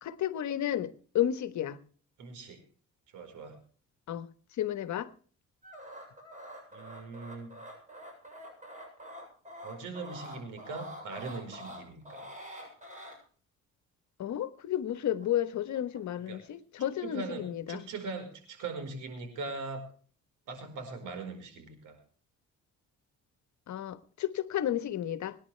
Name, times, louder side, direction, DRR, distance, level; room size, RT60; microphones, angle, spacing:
voice 1, 0.0-1.8 4.1-4.3 4.6-5.1 14.2-17.8 23.7-25.4, left 11 dB, 70° left, 12 dB, 1.3 m, -32 dB
voice 2, 2.2-2.6 3.1-3.6 6.7-7.5 9.6-12.3 16.3-16.4 17.0-19.9 20.5-22.0, right 4 dB, 85° right, 7 dB, 4.8 m, -41 dB
sound 1, 5.6-13.1 14.8-15.3 15.6-16.0, equal, 25° right, 7.4 m, -46 dB
24.5 x 10.5 x 3.4 m, 0.43 s
cardioid pair, 90°, 30 cm